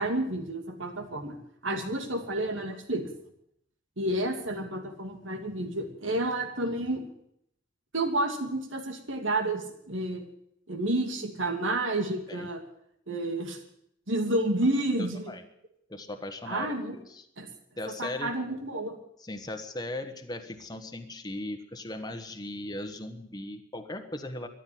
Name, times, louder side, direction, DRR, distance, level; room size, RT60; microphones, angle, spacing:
voice 1, 0.0-1.4 1.6-3.0 4.0-7.0 7.9-10.2 10.7-12.6 13.1-13.6 14.1-15.3 16.5-17.0 17.4-17.5 18.0-19.0, right 1 dB, 90° right, 5 dB, 2.6 m, -30 dB
voice 2, 15.0-15.4 15.9-17.2 17.8-18.3 19.2-24.5, left 1 dB, 20° left, 5 dB, 1.3 m, -38 dB
14.0 x 11.0 x 9.4 m, 0.73 s
head